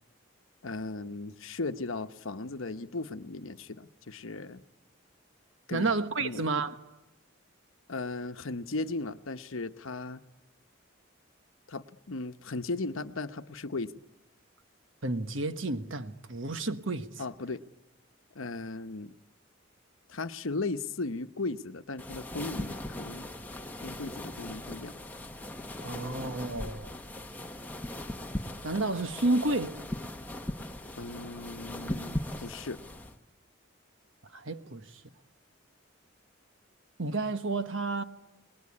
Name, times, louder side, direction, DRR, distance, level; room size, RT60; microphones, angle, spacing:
voice 1, 0.6-4.6 5.7-5.9 6.2-6.5 7.9-10.2 11.7-13.9 17.2-17.6 18.3-19.1 20.1-23.3 23.8-25.0 31.0-32.8, left 3 dB, 80° left, 1.0 m, -37 dB
voice 2, 5.7-6.8 15.0-17.2 25.8-26.9 28.6-29.8 34.3-34.9 37.0-38.0, right 2 dB, 65° right, 1.3 m, -31 dB
sound 1, 22.0-33.2, left 1 dB, 10° left, 1.2 m, -39 dB
29.0 x 20.5 x 9.7 m
head